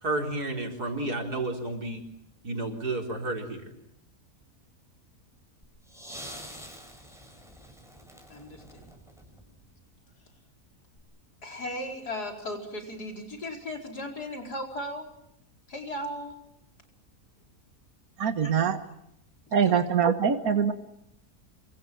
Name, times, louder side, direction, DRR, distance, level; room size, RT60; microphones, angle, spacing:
voice 1, 0.0-2.0 2.4-3.7, right 2 dB, 80° right, 2 dB, 4.9 m, -31 dB
sound 1, 5.6-9.8 11.0-11.1, equal, ahead, 5.9 m, -46 dB
voice 2, 8.3-8.8 11.4-15.1 15.7-16.4 18.4-18.5 19.5-19.8, left 1 dB, 90° left, 3 dB, 5.2 m, -37 dB
voice 3, 18.2-18.8 19.5-20.7, right 7 dB, 65° right, 8 dB, 1.9 m, -23 dB
27.0 x 25.0 x 7.5 m, 0.79 s
omnidirectional pair, 1.6 m